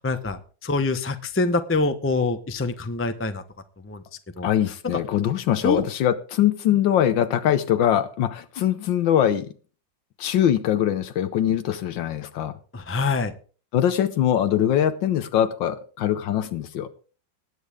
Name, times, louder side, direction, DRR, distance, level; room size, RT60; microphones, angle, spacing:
voice 1, 0.0-3.4 3.8-4.0 4.4-4.5 5.6-5.8 12.7-13.3, left 3 dB, 15° left, 8 dB, 0.4 m, -25 dB
voice 2, 4.4-9.5 10.2-12.5 13.7-16.9, left 10 dB, 85° left, 10 dB, 1.6 m, -22 dB
20.0 x 8.5 x 3.5 m, 0.38 s
omnidirectional pair, 2.0 m